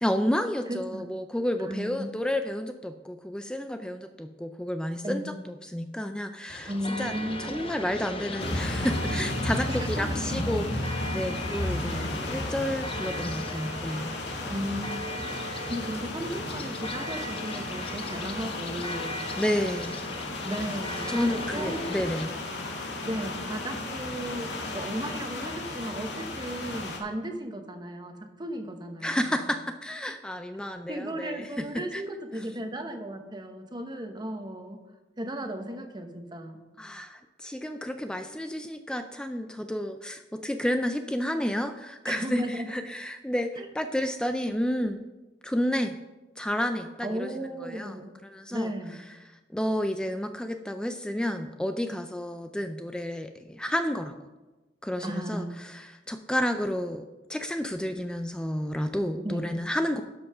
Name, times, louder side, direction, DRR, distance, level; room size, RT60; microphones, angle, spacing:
voice 1, 0.0-7.1 7.4-14.1 19.4-20.0 21.1-22.3 29.0-32.0 36.8-45.1 45.4-45.9 46.4-47.3 47.6-47.9 48.2-48.7 49.3-54.1 54.8-60.0, equal, 5° left, 7 dB, 0.4 m, -31 dB
voice 2, 0.7-1.0 1.6-2.2 5.0-5.3 6.7-7.5 9.7-10.2 14.5-15.1 15.6-19.2 20.4-21.8 23.0-29.4 30.9-34.8 35.2-36.6 42.1-42.7 43.6-43.7 47.0-48.1 48.5-48.9 55.0-55.5 59.2-59.4, right 1 dB, 25° right, 5 dB, 1.0 m, -35 dB
sound 1, 6.5-22.3, left 1 dB, 30° left, 0.8 m, -38 dB
sound 2, 8.4-27.0, left 2 dB, 75° left, 1.9 m, -34 dB
12.0 x 5.6 x 5.5 m, 1.2 s
head